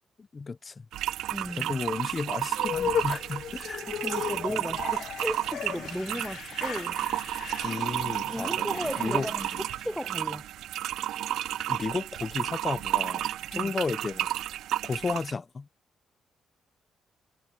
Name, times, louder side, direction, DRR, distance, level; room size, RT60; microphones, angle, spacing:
voice 1, 0.2-0.8 1.6-3.9 7.6-8.7 9.0-9.3 11.7-14.3 14.8-15.7, left 4 dB, 30° left, 0.8 m, -33 dB
sound 1, 0.9-15.3, right 13 dB, 80° right, 0.4 m, -32 dB
voice 2, 1.3-1.7 3.9-7.0 8.3-10.4 13.5-13.7, equal, ahead, 0.4 m, -35 dB
sound 2, 2.6-10.0, left 9 dB, 70° left, 1.2 m, -36 dB
cardioid pair, 90°, 0 cm